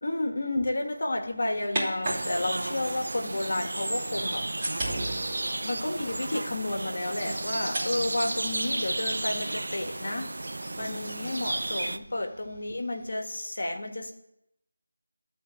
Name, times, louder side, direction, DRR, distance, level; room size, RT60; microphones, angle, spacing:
voice 1, 0.0-4.5 5.6-10.3 10.8-14.1, left 2 dB, 55° left, 4 dB, 1.7 m, -31 dB
sound 1, 1.1-3.3 4.1-13.1, right 1 dB, 20° right, 2.9 m, -40 dB
sound 2, 2.0-12.0, right 2 dB, 60° right, 0.7 m, -33 dB
11.5 x 4.1 x 7.5 m, 0.82 s
figure-of-eight pair, 170°, 0 cm